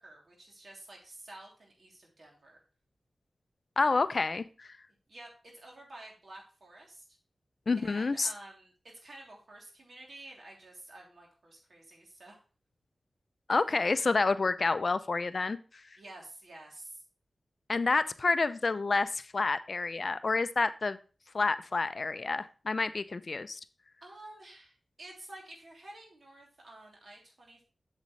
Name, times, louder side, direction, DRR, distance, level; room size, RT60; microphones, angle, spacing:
voice 1, 0.0-2.6 5.1-7.0 7.8-8.7 9.0-12.3 16.0-17.0 24.0-27.6, right 1 dB, 60° right, -1 dB, 3.1 m, -50 dB
voice 2, 3.8-4.8 7.7-8.3 13.5-15.6 17.7-21.0 21.3-23.6, left 3 dB, 55° left, 13 dB, 0.4 m, -29 dB
8.2 x 7.3 x 3.2 m, 0.36 s
wide cardioid pair, 80°, 0 cm